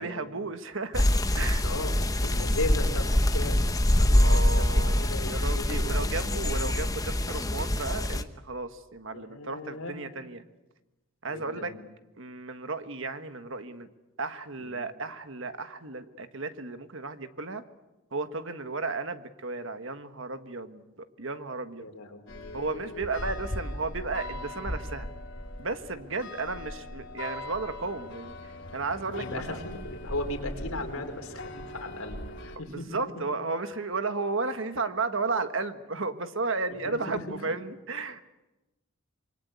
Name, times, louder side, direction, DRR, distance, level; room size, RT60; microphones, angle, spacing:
voice 1, 0.0-1.6 4.1-10.4 11.2-11.7 12.2-13.9 14.2-17.6 18.1-21.9 22.5-25.1 25.6-29.6 32.7-38.2, right 3 dB, 60° right, 9 dB, 1.5 m, -34 dB
sound 1, 0.9-8.2, left 1 dB, 15° left, 0.9 m, -24 dB
voice 2, 1.6-3.6 3.9-6.7 9.1-10.0 11.3-11.7 14.6-14.7 21.8-23.1 29.1-32.2 32.4-32.9 36.8-37.4, left 2 dB, 75° left, 4 dB, 4.6 m, -37 dB
sound 2, 22.3-32.6, left 1 dB, 55° left, 3.2 m, -39 dB
26.5 x 23.0 x 8.2 m, 1.0 s
head